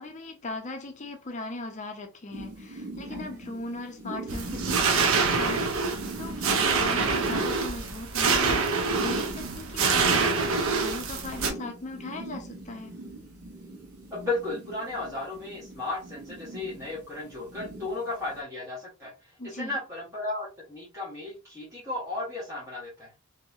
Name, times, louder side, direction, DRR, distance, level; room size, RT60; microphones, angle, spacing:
voice 1, 0.0-12.9 19.4-19.8, left 2 dB, 30° left, 0.6 m, -38 dB
sound 1, 2.3-18.4, right 2 dB, 80° right, 0.9 m, -41 dB
sound 2, 4.3-11.5, right 4 dB, 60° right, 0.6 m, -26 dB
voice 2, 14.1-23.1, left 2 dB, 15° right, 1.3 m, -34 dB
2.9 x 2.7 x 2.4 m
head